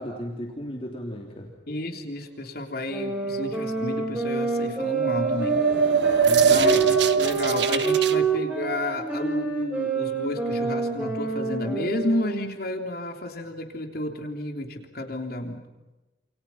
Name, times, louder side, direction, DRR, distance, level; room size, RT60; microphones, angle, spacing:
voice 1, 0.0-1.5 6.2-6.9, equal, 35° left, 1 dB, 3.5 m, -35 dB
voice 2, 1.7-5.6 6.4-15.6, left 1 dB, 60° left, 4 dB, 3.3 m, -31 dB
sound 1, 2.9-12.5, right 5 dB, 10° right, 5.7 m, -27 dB
sound 2, 4.8-8.2, right 6 dB, 80° right, 1.3 m, -22 dB
30.0 x 28.5 x 5.8 m, 1.1 s
head